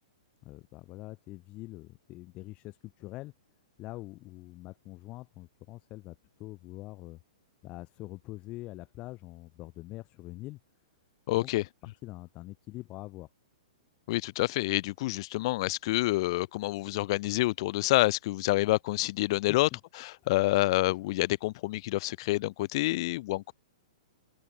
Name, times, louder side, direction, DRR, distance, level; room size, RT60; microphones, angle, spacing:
voice 1, 0.4-3.3 3.8-7.2 7.6-10.6 11.3-11.5 12.0-13.3 19.5-19.8, left 19 dB, 30° left, 4.2 m, -44 dB
voice 2, 11.3-11.6 14.1-19.7 20.0-23.5, left 19 dB, 50° left, 0.9 m, -28 dB
open air
hypercardioid pair, 135°, 4 cm